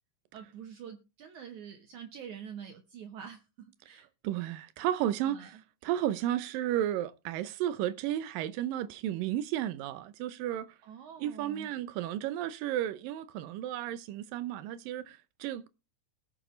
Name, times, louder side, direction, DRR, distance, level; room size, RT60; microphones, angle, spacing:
voice 1, 0.3-4.1 5.2-5.5 10.8-11.7, right 8 dB, 65° right, 2.3 m, -46 dB
voice 2, 4.2-5.6 5.8-10.7 11.2-15.7, right 12 dB, 90° right, 2.5 m, -33 dB
19.5 x 6.8 x 3.2 m
omnidirectional pair, 3.9 m